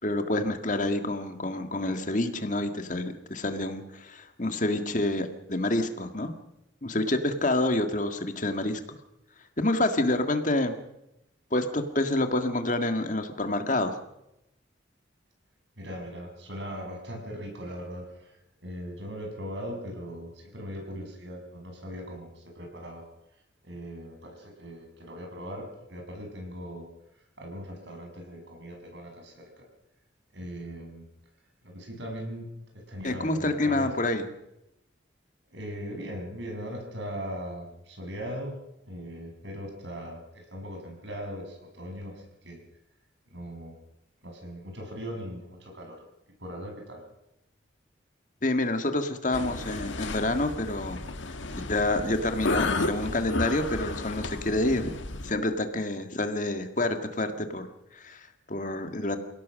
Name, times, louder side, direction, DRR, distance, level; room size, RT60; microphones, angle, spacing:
voice 1, 0.0-6.3 6.8-8.8 9.6-10.7 11.5-13.9 33.0-34.3 48.4-51.0 51.7-54.9 55.2-57.7 57.9-59.2, left 2 dB, 40° left, 7 dB, 1.8 m, -28 dB
voice 2, 15.8-23.1 23.6-29.7 30.3-31.1 31.6-32.5 32.7-33.9 35.5-42.6 43.3-43.8 44.2-46.0 46.4-47.0, equal, 65° right, 2 dB, 6.4 m, -39 dB
sound 1, 49.3-55.3, left 2 dB, 80° left, 1.7 m, -33 dB
28.0 x 17.5 x 6.4 m, 0.86 s
head